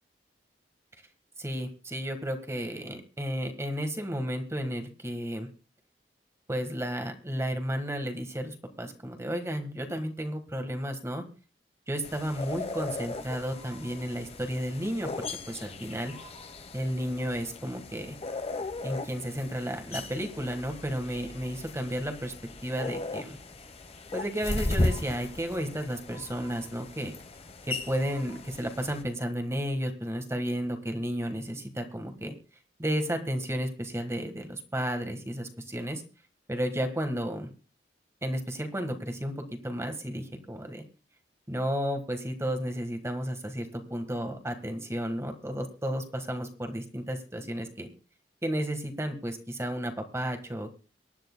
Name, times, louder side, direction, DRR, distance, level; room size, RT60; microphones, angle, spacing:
voice 1, 1.4-5.5 6.5-11.2 11.9-16.1 16.7-18.2 18.8-22.3 22.6-23.4 24.1-27.1 27.7-32.3 32.8-36.0 36.5-37.5 38.2-40.8 41.5-47.9 48.4-50.7, equal, 15° right, 6 dB, 1.5 m, -33 dB
sound 1, 12.0-29.0, left 2 dB, 35° left, 1.0 m, -37 dB
23.5 x 10.5 x 2.2 m, 0.35 s
head